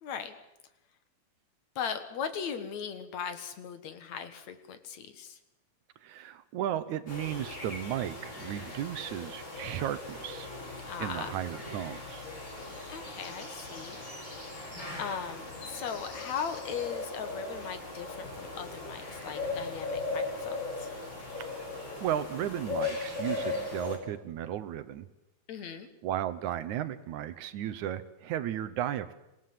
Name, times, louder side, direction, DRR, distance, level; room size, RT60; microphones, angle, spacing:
voice 1, 0.0-0.4 1.8-5.4 10.9-11.4 12.9-14.0 15.0-20.9 25.5-25.9, left 7 dB, 65° left, 10 dB, 2.7 m, -38 dB
voice 2, 6.0-10.5 11.0-12.2 21.4-21.7 22.0-25.1 26.0-29.1, right 11 dB, 75° right, 13 dB, 2.3 m, -35 dB
sound 1, 7.1-24.0, left 3 dB, 35° left, 6.6 m, -38 dB
26.0 x 18.0 x 7.6 m, 0.93 s
omnidirectional pair, 3.6 m